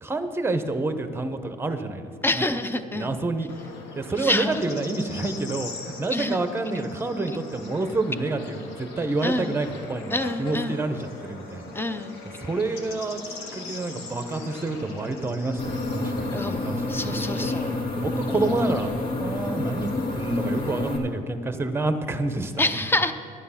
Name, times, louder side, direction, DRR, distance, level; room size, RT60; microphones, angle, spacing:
voice 1, 0.0-2.4 2.9-3.5 3.9-5.7 6.0-11.7 12.2-17.5 18.0-18.9 19.2-22.8, right 2 dB, 15° right, 9 dB, 0.9 m, -28 dB
voice 2, 2.2-3.2 4.2-4.6 6.1-6.4 9.2-9.5 10.1-10.9 11.7-12.2 16.3-16.6 16.9-17.7 18.3-18.5 22.6-23.1, left 2 dB, 15° left, 10 dB, 0.7 m, -27 dB
Bird / Insect, 3.5-20.9, left 3 dB, 90° left, 1.7 m, -41 dB
sound 1, 15.6-21.0, left 2 dB, 60° left, 1.9 m, -29 dB
11.5 x 9.3 x 5.8 m, 2.3 s
cardioid pair, 110°, 17 cm